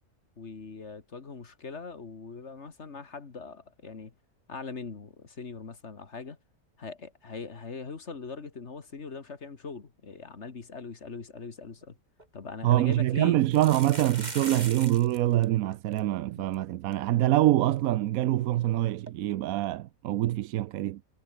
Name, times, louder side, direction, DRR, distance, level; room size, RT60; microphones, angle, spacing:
voice 1, 0.4-4.1 4.5-6.4 6.8-12.0 12.3-13.4 16.3-16.5, left 4 dB, 50° left, 2.1 m, -41 dB
sound 1, 11.8-11.9 12.2-12.3 13.4-15.2 15.4-15.5 15.7-16.0 16.5-16.6 16.9-17.0 19.1-19.2, right 2 dB, 30° right, 3.7 m, -40 dB
voice 2, 12.6-21.0, right 14 dB, 75° right, 1.0 m, -25 dB
omnidirectional pair, 1.5 m